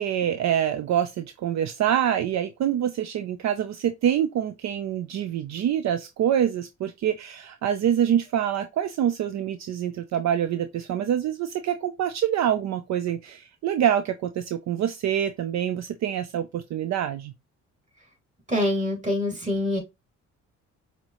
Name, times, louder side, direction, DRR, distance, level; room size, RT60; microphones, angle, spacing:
voice 1, 0.0-17.3, right 10 dB, 65° right, 0.5 m, -26 dB
voice 2, 18.5-19.8, left 1 dB, 25° right, 2.6 m, -25 dB
5.9 x 2.8 x 3.0 m
cardioid pair, 90°, 30 cm